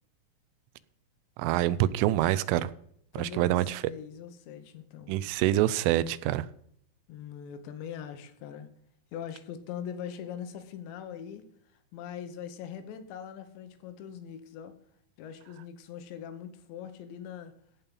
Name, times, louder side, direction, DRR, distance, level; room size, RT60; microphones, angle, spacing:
voice 1, 1.4-2.7 3.1-3.8 5.1-6.5, right 14 dB, 85° right, 16 dB, 3.1 m, -26 dB
voice 2, 3.1-3.6 3.9-5.1 7.1-8.7 9.1-11.4 11.9-14.7 15.2-17.5, left 8 dB, 75° left, 9 dB, 3.1 m, -41 dB
15.5 x 5.6 x 5.4 m, 0.66 s
omnidirectional pair, 5.7 m